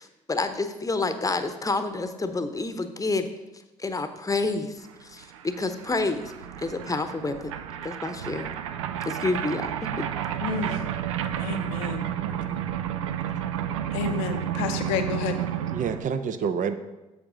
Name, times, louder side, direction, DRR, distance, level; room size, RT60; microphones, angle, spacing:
voice 1, 0.0-3.3 3.8-6.3 6.6-7.5 7.8-8.4 9.0-9.9, left 3 dB, 20° left, 9 dB, 0.8 m, -29 dB
sound 1, 4.9-5.0 5.2-16.0, right 10 dB, 85° right, 0.4 m, -31 dB
voice 2, 10.4-10.7 11.4-12.1 13.9-15.4, left 6 dB, 80° left, 7 dB, 0.7 m, -30 dB
voice 3, 12.2-12.6 15.7-16.8, right 6 dB, 55° right, 10 dB, 0.7 m, -29 dB
7.9 x 7.4 x 3.8 m, 1.1 s
hypercardioid pair, 50°, 16 cm